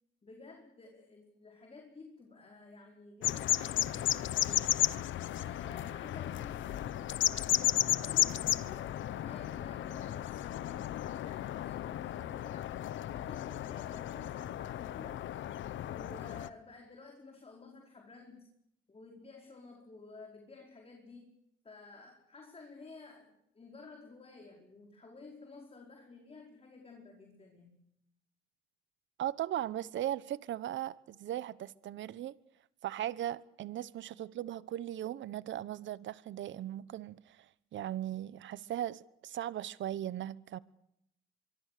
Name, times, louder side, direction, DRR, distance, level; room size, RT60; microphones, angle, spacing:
voice 1, 0.2-4.8 5.4-7.2 7.8-12.7 13.1-15.3 15.8-18.5 18.9-21.3 21.6-27.8, left 3 dB, 30° left, 4.9 m, -53 dB
sound 1, 3.2-16.5, left 12 dB, 75° left, 1.1 m, -34 dB
voice 2, 29.2-32.3 32.8-40.6, right 12 dB, 70° right, 1.0 m, -38 dB
24.5 x 24.0 x 6.7 m
cardioid pair, 90°, 20 cm